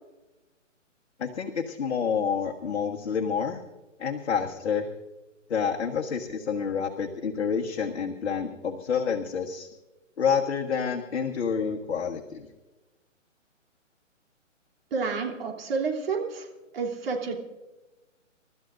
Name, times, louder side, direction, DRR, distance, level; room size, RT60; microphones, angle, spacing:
voice 1, 1.2-3.6 4.0-4.9 5.5-9.7 10.2-12.5, left 6 dB, 55° left, 3 dB, 1.5 m, -28 dB
voice 2, 14.9-16.5 16.7-17.3, right 4 dB, 45° right, 1 dB, 3.3 m, -29 dB
29.5 x 13.5 x 2.6 m, 1.1 s
hypercardioid pair, 150°, 38 cm